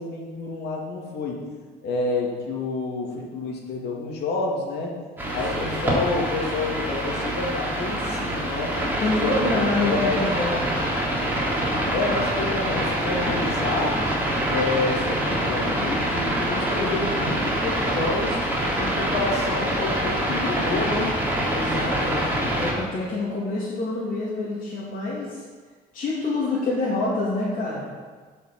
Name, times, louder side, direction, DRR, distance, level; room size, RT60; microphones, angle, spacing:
voice 1, 0.0-1.4 1.8-5.0 5.3-8.8 9.1-10.2 11.9-14.0 14.5-18.4 18.8-21.1, left 3 dB, 75° left, -2 dB, 2.7 m, -29 dB
sound 1, 5.2-22.7, right 1 dB, 10° right, 3.5 m, -25 dB
voice 2, 5.4-5.8 9.0-10.7 21.5-22.2 22.5-25.4 25.9-27.8, left 2 dB, 50° left, -8 dB, 3.1 m, -27 dB
10.5 x 6.5 x 6.5 m, 1.5 s
cardioid pair, 110°, 17 cm